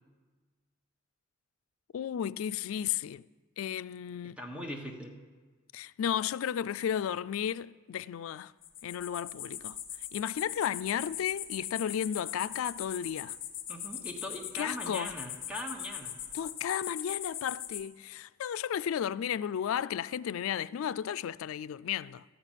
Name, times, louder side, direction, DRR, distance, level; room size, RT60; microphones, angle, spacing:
voice 1, 1.9-3.2 3.6-4.4 5.7-8.5 8.8-9.8 10.1-13.4 14.6-15.1 16.3-22.2, left 9 dB, 85° left, 0.3 m, -33 dB
voice 2, 4.2-5.2 13.7-16.1, left 1 dB, 5° right, 1.2 m, -40 dB
sound 1, 8.6-17.8, left 11 dB, 45° left, 1.2 m, -41 dB
14.0 x 5.9 x 9.0 m
head